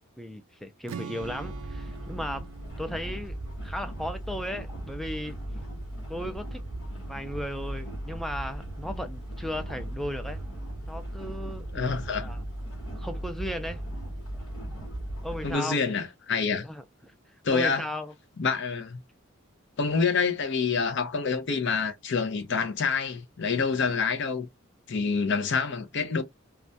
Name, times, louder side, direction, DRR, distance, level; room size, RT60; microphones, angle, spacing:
voice 1, 0.2-2.5 2.8-5.4 6.1-6.6 7.1-10.4 10.9-11.9 12.1-12.4 13.0-13.8 15.2-15.8 16.6-17.1 17.5-18.1, equal, ahead, 0.3 m, -36 dB
Strum, 0.9-5.0, right 5 dB, 85° right, 0.4 m, -45 dB
sound 1, 1.2-15.5, right 1 dB, 75° left, 1.2 m, -37 dB
voice 2, 11.7-12.3 15.4-16.7 17.4-17.9 18.4-19.0 19.8-24.5 24.9-26.2, left 5 dB, 55° left, 0.5 m, -27 dB
2.3 x 2.1 x 2.6 m
head